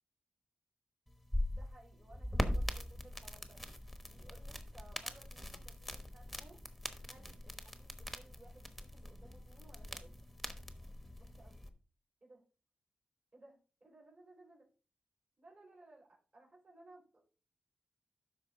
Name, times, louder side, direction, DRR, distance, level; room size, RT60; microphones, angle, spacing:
sound 1, 1.1-11.7, left 1 dB, ahead, 1.0 m, -42 dB
voice 1, 1.4-3.6 4.1-6.6 7.0-10.2 11.2-11.6 12.2-12.4 13.3-14.6 15.4-17.0, right 2 dB, 50° right, -3 dB, 5.0 m, -61 dB
12.0 x 4.5 x 3.7 m, 0.37 s
wide cardioid pair, 85°, 3 cm